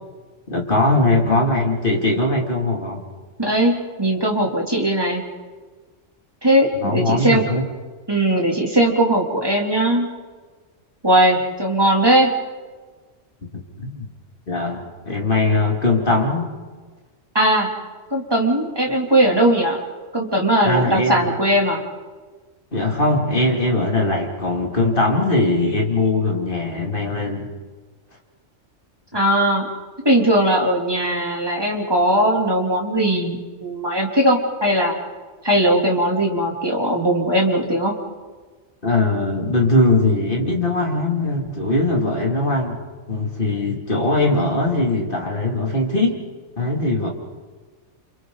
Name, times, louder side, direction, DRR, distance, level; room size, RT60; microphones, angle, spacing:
voice 1, 0.5-3.0 6.8-7.7 13.5-14.1 14.5-16.5 20.6-21.3 22.7-27.5 38.8-42.8 43.1-46.2 46.6-47.1, left 2 dB, 40° left, 0 dB, 3.1 m, -20 dB
voice 2, 3.4-5.2 6.4-7.4 8.1-10.1 11.0-12.3 17.3-17.7 18.1-19.8 20.1-21.8 29.1-29.7 30.0-35.0 35.4-38.0, right 1 dB, 20° right, -1 dB, 3.1 m, -19 dB
29.5 x 27.5 x 4.0 m, 1.4 s
omnidirectional pair, 1.3 m